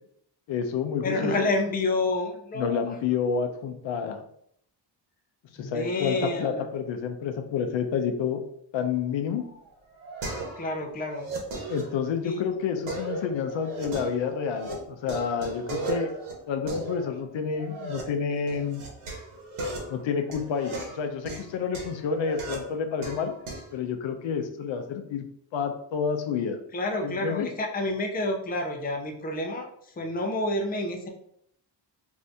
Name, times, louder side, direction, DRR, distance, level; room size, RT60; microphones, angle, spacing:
voice 1, 0.5-1.5 2.5-4.2 5.6-8.4 8.7-9.5 11.7-16.1 16.5-18.8 19.9-23.3 23.7-25.3 25.5-26.6 27.0-27.5, left 6 dB, 70° left, 6 dB, 0.5 m, -29 dB
voice 2, 1.0-2.9 5.6-6.6 10.6-11.6 12.2-12.4 26.7-31.1, left 2 dB, 20° left, 2 dB, 0.5 m, -29 dB
sound 1, 9.4-10.8 11.1-12.4 12.9-14.7 15.0-18.0 18.5-23.7, right 2 dB, 75° right, 1.1 m, -36 dB
2.6 x 2.6 x 3.3 m, 0.68 s
cardioid pair, 90°, 48 cm